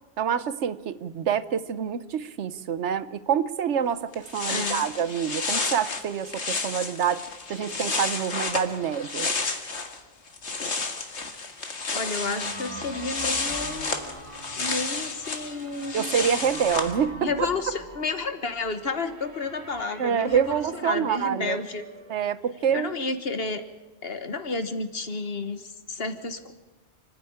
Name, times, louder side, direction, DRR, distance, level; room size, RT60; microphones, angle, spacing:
voice 1, 0.2-7.2 7.5-9.3 15.9-17.3 20.0-21.6 22.1-23.0, right 8 dB, 80° right, 15 dB, 1.1 m, -26 dB
sound 1, 3.8-3.9 4.1-10.0 10.3-16.9, left 4 dB, 75° left, 2.0 m, -31 dB
voice 2, 4.5-4.8 11.9-13.9 14.5-16.1 17.2-21.8 22.7-23.6 24.0-26.5, left 3 dB, 60° left, 9 dB, 1.6 m, -31 dB
sound 2, 12.1-22.2, right 1 dB, 25° right, 1.9 m, -43 dB
29.0 x 10.5 x 8.8 m, 1.2 s
omnidirectional pair, 1.2 m